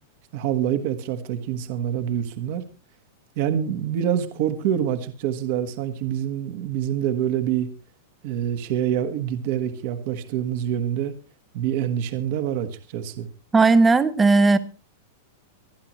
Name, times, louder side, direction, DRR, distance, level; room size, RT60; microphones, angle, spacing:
voice 1, 0.3-2.6 3.4-7.7 8.2-11.1 11.5-13.3, right 10 dB, 45° right, 1.4 m, -26 dB
voice 2, 13.5-14.6, right 3 dB, 10° right, 0.8 m, -16 dB
25.0 x 10.5 x 3.1 m
supercardioid pair, 170°, 0 cm